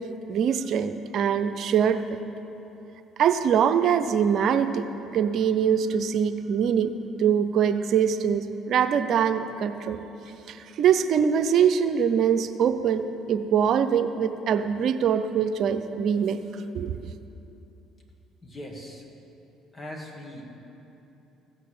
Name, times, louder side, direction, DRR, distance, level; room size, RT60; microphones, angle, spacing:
voice 1, 0.3-2.0 3.2-4.8 5.1-6.9 7.2-10.0 10.5-13.0 13.3-16.4 16.7-16.9, right 8 dB, 60° right, 9 dB, 0.6 m, -23 dB
voice 2, 18.4-19.0 19.7-20.5, left 1 dB, 25° left, 0 dB, 2.5 m, -40 dB
15.5 x 6.6 x 7.7 m, 3.0 s
hypercardioid pair, 60°, 0 cm